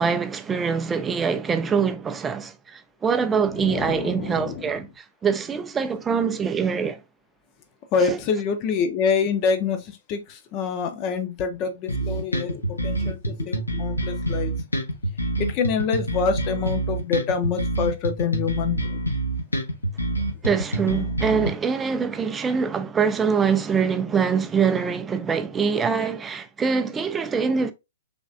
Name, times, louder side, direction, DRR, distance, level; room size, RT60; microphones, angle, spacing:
voice 1, 0.0-7.0 8.1-8.2 20.4-27.7, right 6 dB, 15° right, 0.4 m, -24 dB
voice 2, 3.5-4.7 7.9-14.5 15.4-19.0, left 5 dB, 35° left, 0.7 m, -26 dB
sound 1, 11.9-21.5, right 1 dB, 90° left, 0.9 m, -26 dB
3.5 x 3.1 x 2.5 m
figure-of-eight pair, 115°, 0 cm